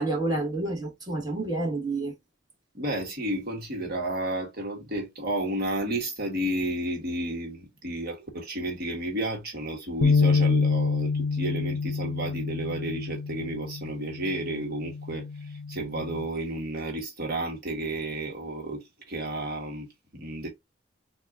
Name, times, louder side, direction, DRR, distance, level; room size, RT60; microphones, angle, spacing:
voice 1, 0.0-2.1, right 2 dB, 25° right, 1.5 m, -29 dB
voice 2, 2.7-20.5, right 1 dB, 60° right, 1.3 m, -32 dB
sound 1, 10.0-16.3, left 4 dB, 65° left, 0.4 m, -27 dB
4.2 x 2.4 x 3.6 m
head